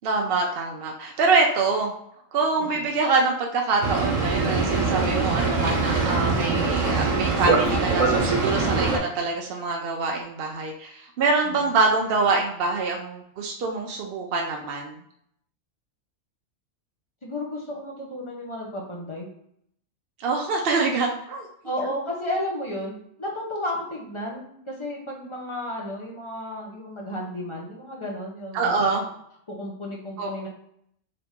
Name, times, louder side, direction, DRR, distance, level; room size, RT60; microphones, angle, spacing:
voice 1, 0.0-1.9 2.3-15.0 20.2-21.5 28.5-29.0 30.2-30.3, right 3 dB, 60° right, 1 dB, 0.7 m, -25 dB
Boat Water vehicle, 3.8-9.0, right 4 dB, 80° right, 1.4 m, -23 dB
voice 2, 6.3-6.7 11.4-11.7 17.2-19.3 21.6-28.7 29.5-30.5, left 1 dB, 25° left, -2 dB, 0.8 m, -33 dB
3.9 x 2.8 x 3.6 m, 0.71 s
omnidirectional pair, 1.3 m